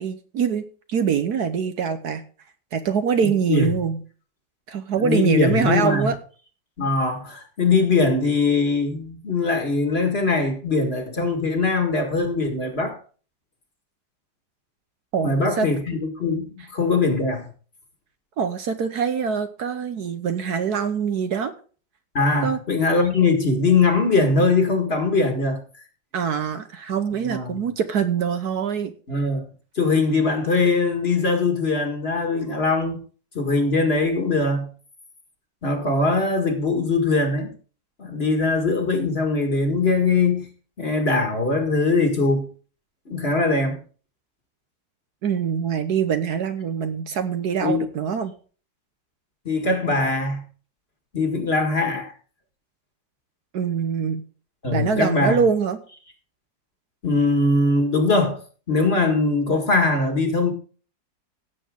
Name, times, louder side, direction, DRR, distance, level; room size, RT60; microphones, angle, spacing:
voice 1, 0.0-2.2 2.7-4.0 4.7-6.2 15.1-15.7 18.4-21.5 22.4-22.6 26.1-28.9 45.2-48.3 53.5-54.2 54.7-55.8, right 6 dB, 65° right, 1.3 m, -24 dB
voice 2, 3.2-3.7 5.0-6.1 6.8-13.0 15.2-17.5 22.1-25.6 27.2-27.7 29.1-29.5 29.8-33.0 33.3-34.7 35.6-37.5 38.0-40.5 40.8-42.5 43.1-43.8 47.6-47.8 49.5-50.4 51.1-52.1 54.6-55.4 57.0-58.4 58.7-60.5, left 3 dB, 35° left, 1.9 m, -21 dB
16.5 x 7.5 x 3.7 m
omnidirectional pair, 2.0 m